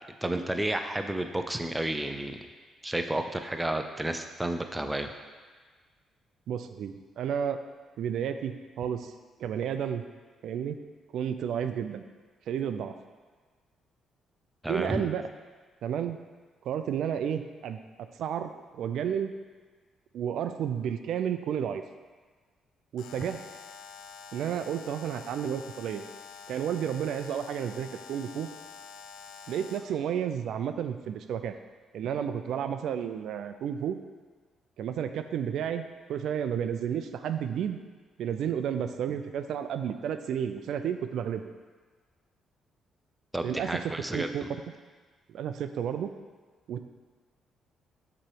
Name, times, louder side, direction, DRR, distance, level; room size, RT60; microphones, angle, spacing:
voice 1, 0.2-2.4 2.8-5.1 14.6-15.0 43.3-44.5, right 1 dB, 10° right, 6 dB, 0.5 m, -31 dB
voice 2, 6.5-7.6 8.0-8.5 8.8-9.1 9.4-10.0 10.4-10.8 11.1-12.0 12.5-12.9 14.7-15.2 15.8-16.2 16.6-17.8 18.2-19.3 20.1-21.8 22.9-23.4 24.3-26.0 26.5-28.5 29.5-31.5 31.9-34.0 34.8-35.8 36.1-37.8 38.2-41.5 43.4-43.8 44.1-44.4 45.3-46.1 46.7-46.8, right 8 dB, 75° right, 9 dB, 0.4 m, -31 dB
Alarm, 23.0-30.0, left 6 dB, 90° left, 0.4 m, -47 dB
7.3 x 3.1 x 4.7 m, 1.5 s
cardioid pair, 90°, 0 cm